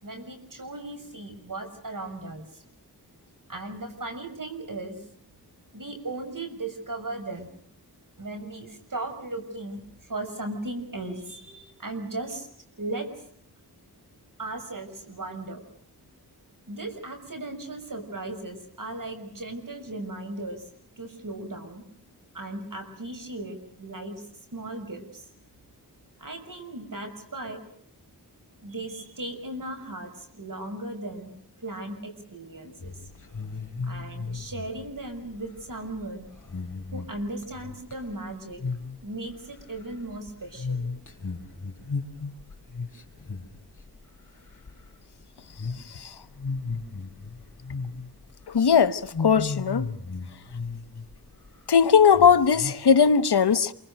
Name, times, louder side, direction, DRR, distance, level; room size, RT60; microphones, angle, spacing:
voice 1, 0.0-2.6 3.5-5.0 5.7-7.5 8.2-12.5 12.8-13.1 14.4-15.6 16.7-20.7 21.0-21.8 22.3-24.3 24.5-25.3 26.2-27.6 28.6-31.3 31.6-33.0 33.8-36.3 36.9-38.6 39.0-40.8, right 2 dB, 55° right, 6.4 m, -37 dB
sound 1, 32.8-38.2 38.5-39.0 39.3-44.2 44.5-44.9 45.5-45.8 46.3-48.3 48.6-48.7 49.1-51.1 51.5-51.6 52.1-52.7, left 4 dB, 50° left, 4.7 m, -35 dB
voice 2, 48.5-49.9 51.7-53.7, left 6 dB, 85° left, 1.2 m, -19 dB
28.0 x 24.5 x 6.5 m
wide cardioid pair, 60°, 39 cm